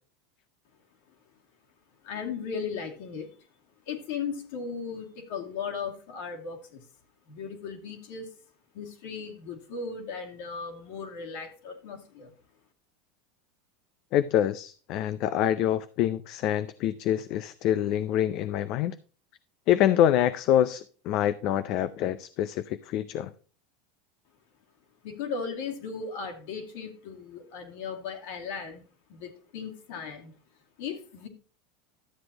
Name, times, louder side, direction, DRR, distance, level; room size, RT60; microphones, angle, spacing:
voice 1, 2.0-3.3 3.9-6.9 7.3-8.3 8.7-12.3 25.0-28.8 29.1-30.3 30.8-31.3, left 5 dB, 70° left, 2.4 m, -37 dB
voice 2, 14.1-18.9 19.7-23.3, left 11 dB, 55° left, 0.5 m, -26 dB
12.5 x 7.7 x 2.9 m
supercardioid pair, 110°, 0 cm